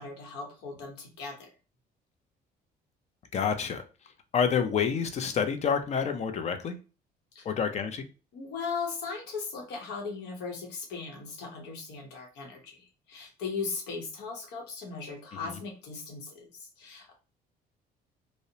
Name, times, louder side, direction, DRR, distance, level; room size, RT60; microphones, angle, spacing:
voice 1, 0.0-1.5 7.3-7.5 8.3-17.1, left 4 dB, 85° left, 0.8 m, -38 dB
voice 2, 3.3-3.8 4.3-6.8 7.4-8.0 15.4-15.6, left 7 dB, 40° left, 0.5 m, -28 dB
2.7 x 2.0 x 2.6 m
cardioid pair, 110°, 17 cm